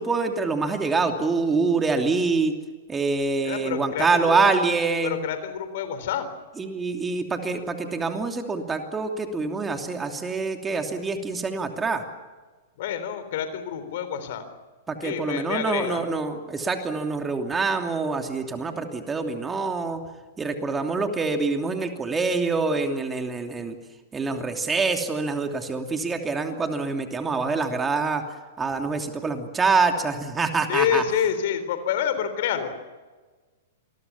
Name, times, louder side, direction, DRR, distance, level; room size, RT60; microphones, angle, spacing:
voice 1, 0.0-2.5 2.9-5.2 6.6-12.0 14.9-20.0 20.4-23.8 24.1-28.2 28.6-31.0, right 4 dB, 15° right, 5 dB, 2.9 m, -25 dB
voice 2, 3.4-4.4 5.0-6.3 12.8-14.5 15.0-16.0 30.7-32.8, left 9 dB, 55° left, 10 dB, 3.7 m, -27 dB
27.5 x 21.5 x 7.1 m, 1.3 s
figure-of-eight pair, 105°, 0 cm